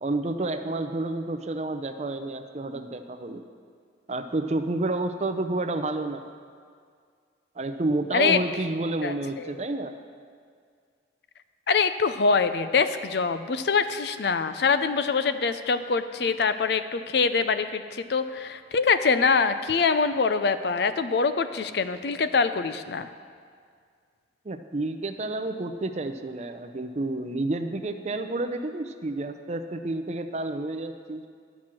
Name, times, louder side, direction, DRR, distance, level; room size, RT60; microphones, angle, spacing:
voice 1, 0.0-3.4 4.1-6.2 7.6-10.0 24.4-31.2, right 2 dB, 40° right, 8 dB, 0.5 m, -30 dB
voice 2, 9.0-9.6 11.7-23.1, left 5 dB, 60° left, 11 dB, 0.5 m, -24 dB
11.5 x 6.1 x 7.5 m, 2.1 s
head